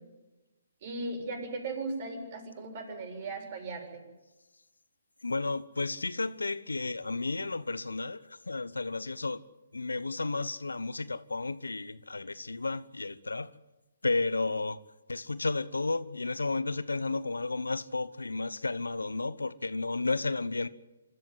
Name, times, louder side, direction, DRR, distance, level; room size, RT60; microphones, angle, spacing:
voice 1, 0.8-4.1, right 3 dB, 45° right, 7.5 m, -37 dB
voice 2, 5.2-9.4 9.7-13.6 14.0-14.8 15.1-20.7, left 3 dB, 85° left, 1.0 m, -32 dB
26.0 x 14.5 x 9.6 m
figure-of-eight pair, 135°, 0 cm